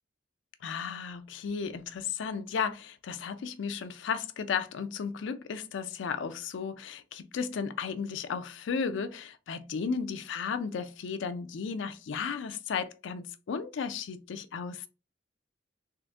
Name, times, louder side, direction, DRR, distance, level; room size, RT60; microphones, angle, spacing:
voice 1, 0.6-14.9, left 6 dB, 80° left, 0.4 m, -34 dB
3.7 x 2.5 x 2.3 m
head